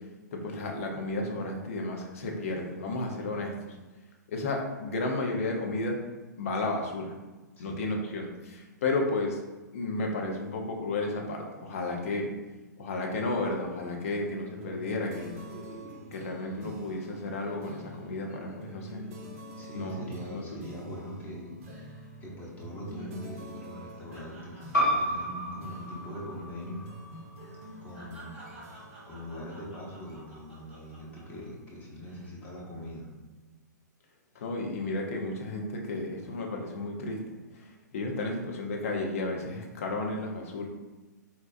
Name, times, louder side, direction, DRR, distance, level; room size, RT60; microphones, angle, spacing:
voice 1, 0.3-3.7 4.3-6.0 6.4-7.1 7.6-9.4 9.7-12.3 12.8-15.4 16.1-19.0 19.7-20.6 34.3-37.2 37.5-40.7, left 2 dB, 45° left, 1 dB, 0.6 m, -33 dB
sound 1, 14.5-17.1 17.4-17.6 17.9-21.3 21.7-22.1 22.4-26.5 26.7-26.9 27.4-31.4 31.9-32.4, right 1 dB, 15° right, 1.0 m, -52 dB
sound 2, 14.6-30.5, equal, 45° right, 0.6 m, -47 dB
voice 2, 19.5-21.5 22.2-26.8 27.8-28.4 29.1-33.1, equal, 15° left, -5 dB, 0.8 m, -42 dB
sound 3, 24.7-29.9, equal, 65° left, 1.1 m, -33 dB
4.0 x 2.2 x 2.5 m, 1.1 s
figure-of-eight pair, 115°, 10 cm